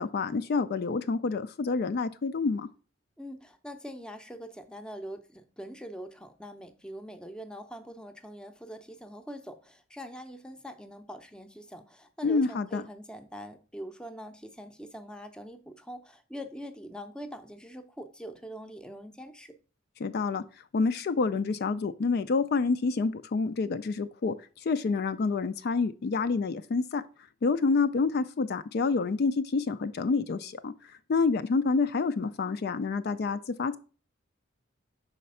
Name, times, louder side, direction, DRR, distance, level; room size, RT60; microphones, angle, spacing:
voice 1, 0.0-2.7 12.2-12.8 20.0-20.4 20.7-27.0 27.4-30.7 31.1-33.8, left 4 dB, 55° left, 0.4 m, -28 dB
voice 2, 3.2-19.6, equal, 5° left, 0.6 m, -43 dB
5.7 x 4.2 x 5.4 m
head